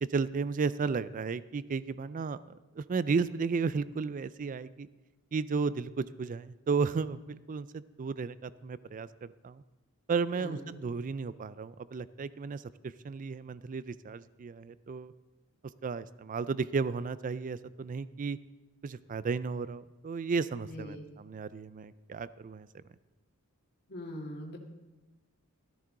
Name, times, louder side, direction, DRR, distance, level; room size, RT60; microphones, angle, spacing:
voice 1, 0.0-4.9 5.3-9.6 10.1-15.1 15.8-18.4 18.8-22.7, right 5 dB, 35° right, 16 dB, 0.4 m, -34 dB
voice 2, 10.3-10.7 20.6-21.0 23.9-24.6, left 1 dB, 45° left, 0 dB, 2.0 m, -41 dB
13.5 x 13.5 x 3.8 m, 1.1 s
head